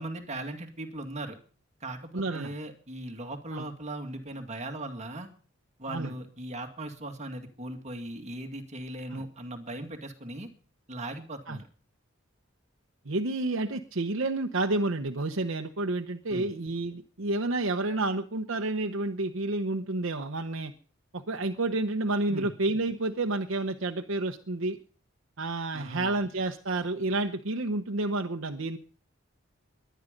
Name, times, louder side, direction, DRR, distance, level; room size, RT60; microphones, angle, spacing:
voice 1, 0.0-1.4 1.8-5.3 5.8-10.5 10.9-11.7 16.3-16.5 22.3-22.5 25.7-26.2, right 1 dB, 35° right, 5 dB, 2.2 m, -38 dB
voice 2, 2.1-2.5 3.5-3.6 5.9-6.1 9.1-9.2 11.5-11.6 13.0-20.7 21.1-24.8 25.4-28.8, right 2 dB, 70° right, 5 dB, 1.0 m, -30 dB
22.0 x 10.5 x 5.2 m, 0.42 s
head